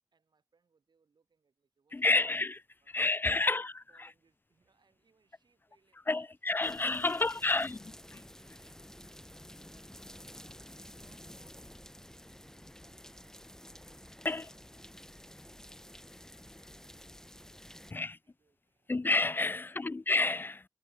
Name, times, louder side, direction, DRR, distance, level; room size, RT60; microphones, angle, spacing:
voice 1, 0.1-2.3 2.8-7.8 8.5-18.9 19.5-19.9, right 5 dB, 80° right, 8.0 m, -74 dB
voice 2, 1.9-2.6 2.9-3.7 6.1-7.8 8.1-8.2 14.2-14.5 17.9-18.2 18.9-20.7, left 3 dB, 30° left, 0.3 m, -29 dB
sound 1, 6.6-17.9, left 1 dB, 5° left, 1.0 m, -51 dB
cardioid pair, 55°, 7 cm